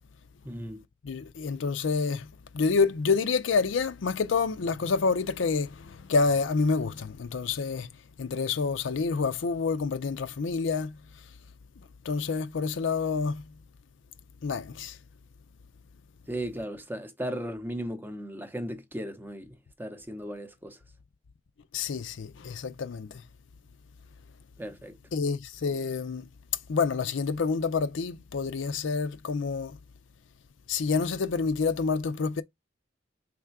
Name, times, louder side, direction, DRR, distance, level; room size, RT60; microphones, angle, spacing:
voice 1, 0.4-0.8 16.3-20.8 24.6-25.0, right 1 dB, 10° right, 0.7 m, -36 dB
voice 2, 1.0-11.4 12.0-13.5 14.4-15.0 21.7-23.3 25.1-29.8 30.7-32.4, left 4 dB, 70° left, 0.5 m, -28 dB
3.6 x 3.2 x 4.6 m
head